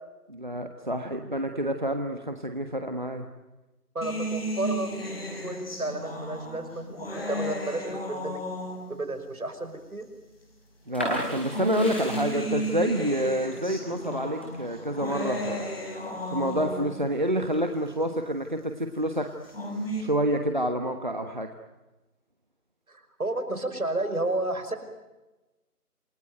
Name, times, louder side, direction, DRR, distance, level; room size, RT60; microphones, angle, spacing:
voice 1, 0.3-3.3 10.9-15.7 16.3-19.3 20.0-21.5, right 1 dB, 30° right, 6 dB, 1.3 m, -28 dB
voice 2, 3.9-4.9 5.4-8.4 8.9-10.1 22.9-24.8, right 2 dB, 65° right, 9 dB, 5.6 m, -32 dB
sound 1, 4.0-9.1 10.0-10.1 11.2-17.1 19.2-20.0, equal, 40° left, 6.6 m, -34 dB
sound 2, 10.9-16.6 17.0-17.9, equal, 5° left, 2.1 m, -37 dB
28.0 x 21.0 x 9.2 m, 1.1 s
figure-of-eight pair, 175°, 46 cm